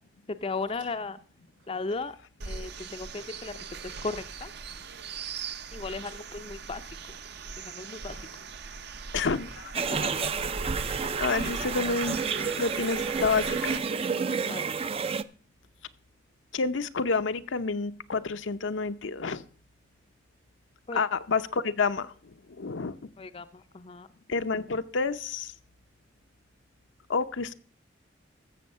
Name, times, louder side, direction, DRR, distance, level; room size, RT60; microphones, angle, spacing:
voice 1, 0.4-1.2 1.7-2.2 2.5-4.5 5.7-6.8 7.6-8.2 9.9-10.3 14.5-14.7 20.9-21.0 23.2-24.1, left 3 dB, 30° left, 10 dB, 0.5 m, -36 dB
sound 1, 0.7-4.5 5.9-8.5 9.4-9.8 10.2-10.3 11.3-11.9 12.2-12.6 13.3-13.4 13.8-15.2, right 2 dB, 85° right, 5.3 m, -55 dB
sound 2, 2.4-13.8, right 5 dB, 60° right, 0.8 m, -40 dB
voice 2, 9.1-9.7 11.2-12.2 12.6-13.8 16.5-19.4 20.9-23.0 24.3-25.5 27.1-27.5, left 4 dB, 75° left, 9 dB, 0.7 m, -29 dB
sound 3, 9.7-15.2, right 5 dB, 30° right, 0.4 m, -30 dB
14.5 x 7.0 x 5.5 m, 0.43 s
head